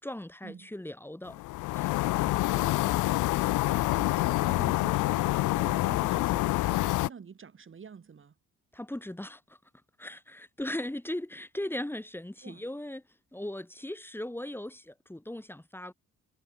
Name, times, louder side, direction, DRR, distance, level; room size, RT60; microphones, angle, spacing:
voice 1, 0.0-1.4 1.7-1.9 8.7-9.6 10.0-13.0 13.3-15.9, left 1 dB, 5° left, 5.7 m, -38 dB
sound 1, 1.3-7.1, left 19 dB, 90° left, 0.7 m, -27 dB
voice 2, 2.2-8.3 12.4-12.6, right 6 dB, 40° right, 5.1 m, -48 dB
cardioid pair, 90°, 30 cm